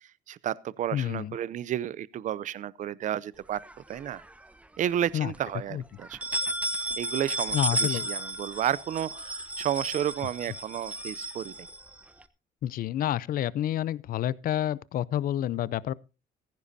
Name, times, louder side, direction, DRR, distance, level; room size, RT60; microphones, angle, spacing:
voice 1, 0.0-3.6 3.9-4.2 4.8-6.2 7.0-11.7, right 11 dB, 50° right, 0.6 m, -32 dB
voice 2, 0.9-1.4 5.1-5.3 5.7-5.8 7.5-8.1 12.6-15.9, left 11 dB, 60° left, 0.6 m, -29 dB
sound 1, 3.5-4.5 4.9-5.0 5.3-5.4 6.0-12.2, right 1 dB, 10° right, 0.9 m, -33 dB
15.5 x 15.0 x 2.7 m
cardioid pair, 110°, 17 cm